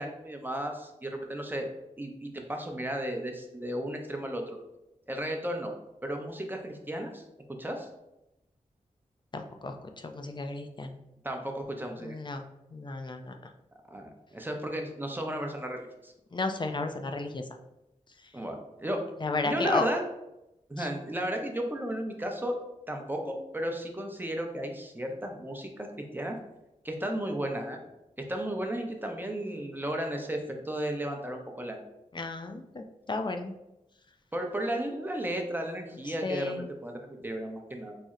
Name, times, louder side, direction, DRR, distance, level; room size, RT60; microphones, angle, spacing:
voice 1, 0.0-1.7 2.0-4.6 5.1-5.7 6.0-7.2 7.6-7.9 11.2-12.1 13.9-16.1 18.3-19.0 19.4-20.0 20.7-22.6 22.9-25.9 26.1-26.4 26.8-27.8 28.3-31.8 34.3-38.0, right 1 dB, 15° right, 3 dB, 0.6 m, -34 dB
voice 2, 9.3-10.9 12.0-12.4 12.7-13.3 16.3-17.4 19.2-19.8 20.8-20.9 32.1-33.6 36.2-36.6, left 3 dB, 35° left, 5 dB, 0.4 m, -33 dB
4.1 x 2.0 x 3.6 m, 0.90 s
wide cardioid pair, 65°, 13 cm